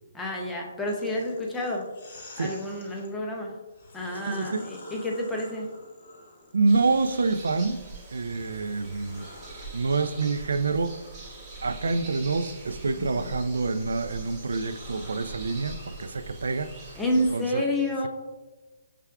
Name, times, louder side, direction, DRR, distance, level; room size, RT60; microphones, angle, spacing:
voice 1, 0.1-1.9 2.4-3.5 3.9-5.7 13.0-13.3 17.0-18.1, left 1 dB, 5° left, 0.4 m, -29 dB
sound 1, 0.8-3.1 3.7-7.8 8.3-17.4, left 1 dB, 35° left, 0.8 m, -49 dB
voice 2, 4.3-4.7 6.5-9.3 9.7-11.0 11.6-16.9 17.3-17.6, right 3 dB, 90° right, 0.3 m, -27 dB
sound 2, 6.7-17.3, right 3 dB, 20° right, 0.8 m, -43 dB
5.7 x 3.4 x 2.3 m
hypercardioid pair, 175°, 0 cm